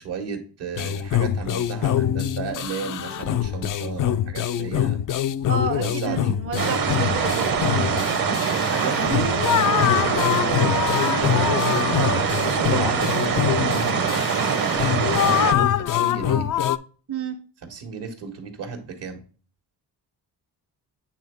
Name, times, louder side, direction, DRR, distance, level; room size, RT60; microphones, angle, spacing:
voice 1, 0.0-5.0 5.8-6.4 8.5-16.5 17.6-19.2, right 5 dB, 75° right, 6 dB, 1.7 m, -33 dB
sound 1, 0.8-16.8, left 10 dB, 50° left, 0.4 m, -24 dB
sound 2, 2.8-4.6, left 6 dB, 90° left, 1.6 m, -42 dB
voice 2, 5.5-7.8 17.1-17.3, right 5 dB, 35° right, 7 dB, 0.7 m, -30 dB
sound 3, 6.6-15.5, right 6 dB, 50° right, 1.0 m, -23 dB
8.4 x 3.5 x 3.4 m, 0.39 s
cardioid pair, 80°, 42 cm